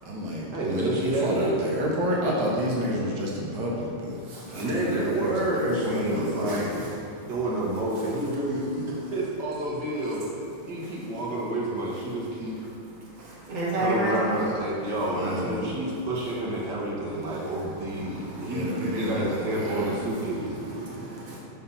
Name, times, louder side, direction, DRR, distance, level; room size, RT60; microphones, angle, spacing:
voice 1, 0.0-7.0 15.1-15.7 18.4-20.2, equal, 75° right, -3 dB, 1.6 m, -30 dB
voice 2, 0.5-1.5 4.5-6.7 7.2-8.8 9.1-10.3 10.7-12.6 13.8-20.5, right 1 dB, 55° right, -5 dB, 1.7 m, -29 dB
voice 3, 4.3-4.6 6.5-6.6 7.2-7.3 10.7-11.0 13.0-14.3 17.3-21.4, right 1 dB, 25° right, -7 dB, 1.5 m, -33 dB
5.6 x 5.5 x 5.5 m, 2.8 s
omnidirectional pair, 2.3 m